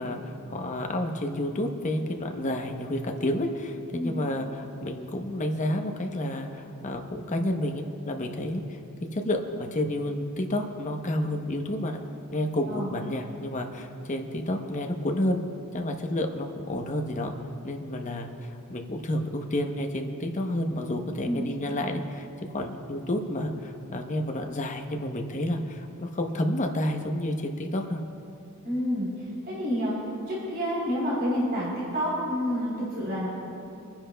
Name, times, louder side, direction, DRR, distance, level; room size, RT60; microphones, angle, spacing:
voice 1, 0.0-8.8 9.1-12.0 12.3-15.4 15.7-17.3 17.6-22.3 22.5-28.0, left 1 dB, 35° left, 4 dB, 0.8 m, -30 dB
voice 2, 28.6-29.1 29.5-30.0 30.3-33.3, equal, 50° right, -7 dB, 3.5 m, -28 dB
28.5 x 10.5 x 2.2 m, 2.6 s
head